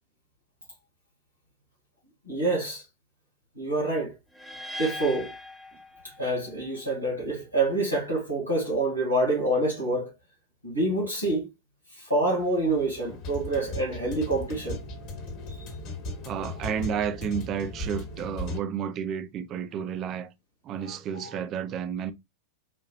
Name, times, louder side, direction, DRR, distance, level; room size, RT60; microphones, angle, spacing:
voice 1, 2.3-2.8 3.6-4.1 4.8-5.3 6.0-10.1 10.6-11.5 11.9-14.8 15.5-15.6 20.8-21.4, right 2 dB, 90° right, 2.0 m, -27 dB
sound 1, 4.3-6.5, left 1 dB, ahead, 0.7 m, -39 dB
sound 2, 12.4-18.6, left 1 dB, 40° left, 1.4 m, -37 dB
voice 2, 16.2-20.3 20.6-22.1, right 8 dB, 35° right, 0.4 m, -31 dB
4.2 x 2.8 x 2.2 m
figure-of-eight pair, 90°, 0 cm